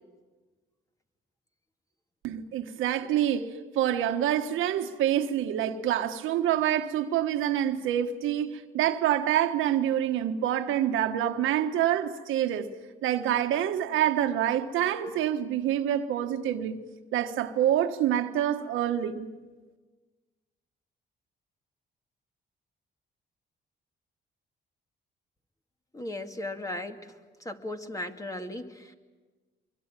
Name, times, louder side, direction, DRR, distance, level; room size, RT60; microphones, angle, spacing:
voice 1, 2.2-12.7 13.0-16.8 17.1-19.3, right 11 dB, 90° right, 1.5 m, -27 dB
voice 2, 25.9-27.1 27.4-28.9, left 1 dB, 15° left, 2.2 m, -36 dB
24.5 x 23.5 x 9.1 m
cardioid pair, 90°, 20 cm